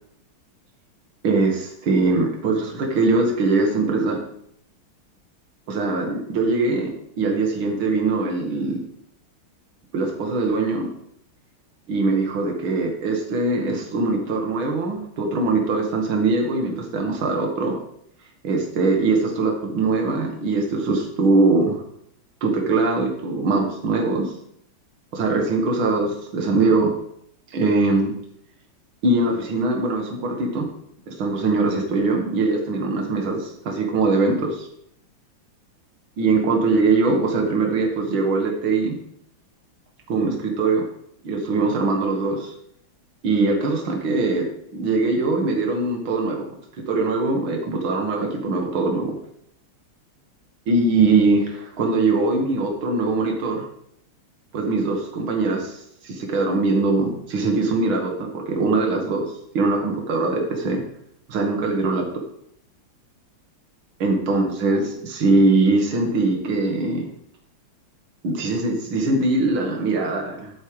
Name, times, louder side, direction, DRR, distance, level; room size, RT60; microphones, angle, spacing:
voice 1, 1.2-4.2 5.7-6.9 7.2-8.8 9.9-10.9 11.9-17.8 18.4-21.8 22.4-24.3 25.1-26.9 27.5-28.1 29.0-30.7 31.1-34.7 36.2-39.0 40.1-40.8 41.2-42.5 43.2-44.5 44.7-46.4 46.9-49.2 50.7-53.6 54.5-59.2 59.5-60.8 61.3-62.1 64.0-67.1 68.2-70.5, right 3 dB, 75° right, 1 dB, 2.4 m, -22 dB
11.5 x 9.9 x 3.2 m, 0.72 s
omnidirectional pair, 2.3 m